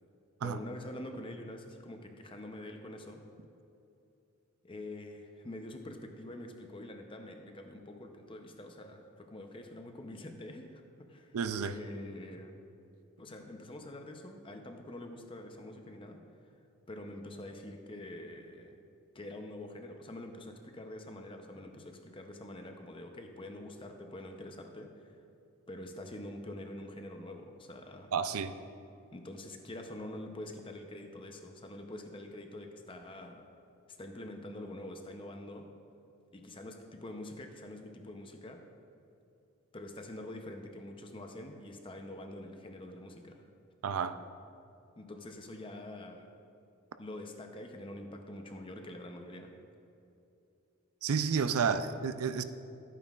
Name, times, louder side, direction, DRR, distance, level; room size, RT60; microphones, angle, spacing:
voice 1, 0.4-3.2 4.6-11.4 11.6-12.6 13.2-16.2 16.9-18.8 19.1-25.2 25.7-28.1 29.1-33.4 34.0-35.7 36.3-38.6 39.7-43.4 45.0-46.3 47.0-49.5, left 1 dB, 25° left, 4 dB, 0.7 m, -45 dB
voice 2, 11.3-11.7 28.1-28.5 43.8-44.2 51.0-52.4, right 6 dB, 85° right, 11 dB, 0.4 m, -31 dB
13.0 x 8.9 x 2.4 m, 2.8 s
head